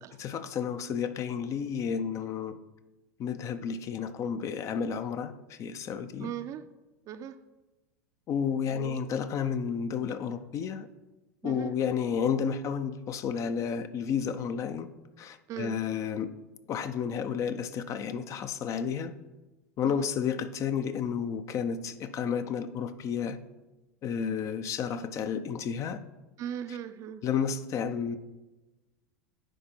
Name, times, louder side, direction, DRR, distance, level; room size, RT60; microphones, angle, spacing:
voice 1, 0.2-2.6 3.2-6.3 8.3-10.9 11.4-14.9 15.2-16.3 16.7-19.1 19.8-23.4 24.0-26.0 27.2-28.2, left 7 dB, 35° left, 11 dB, 0.6 m, -31 dB
voice 2, 6.2-6.6 7.1-7.4 8.7-9.0 11.4-11.7 15.5-15.8 19.8-20.1 26.4-27.2, right 10 dB, 40° right, 11 dB, 0.5 m, -38 dB
10.0 x 4.3 x 4.4 m, 1.1 s
hypercardioid pair, 85°, 8 cm